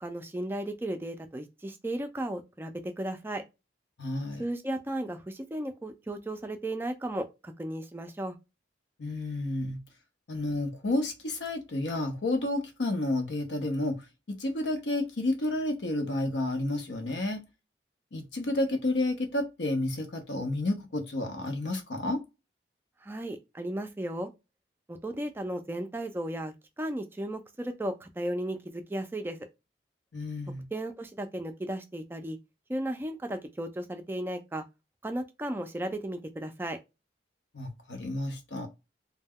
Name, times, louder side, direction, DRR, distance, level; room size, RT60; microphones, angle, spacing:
voice 1, 0.0-3.4 4.4-8.4 23.0-24.3 24.9-29.5 30.7-32.4 32.7-34.6 35.0-36.8, right 1 dB, 15° right, 0.3 m, -35 dB
voice 2, 4.0-4.4 9.0-9.8 10.3-14.0 14.4-17.4 18.1-22.2 30.1-30.6 37.5-38.7, left 2 dB, 85° left, 0.7 m, -30 dB
2.2 x 2.1 x 3.5 m
head